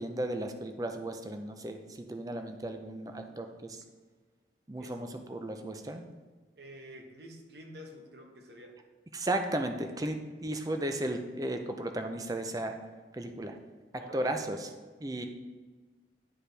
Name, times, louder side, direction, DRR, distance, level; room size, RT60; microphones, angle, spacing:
voice 1, 0.0-3.8 4.7-6.0 9.1-12.8 13.1-13.6 13.9-14.7 15.0-15.3, right 1 dB, 20° right, 6 dB, 0.5 m, -35 dB
voice 2, 6.6-8.8 14.0-14.3, equal, 65° right, 3 dB, 1.1 m, -49 dB
10.0 x 4.8 x 3.3 m, 1.4 s
head